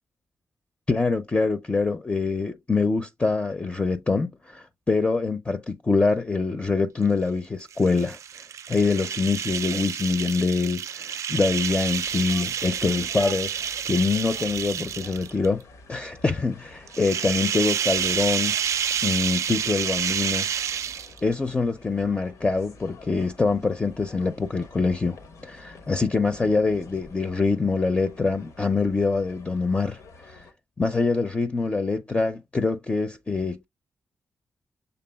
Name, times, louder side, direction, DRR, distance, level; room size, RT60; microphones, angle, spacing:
voice 1, 0.9-8.2 8.7-15.6 15.9-18.5 19.0-20.5 21.2-25.2 25.4-30.5 30.8-33.6, left 4 dB, 25° left, 0.5 m, -25 dB
sound 1, 7.7-15.5 16.9-21.3, right 8 dB, 75° right, 0.3 m, -29 dB
sound 2, 11.4-30.5, left 3 dB, 85° left, 1.0 m, -48 dB
6.9 x 3.4 x 2.2 m
cardioid pair, 90°, 5 cm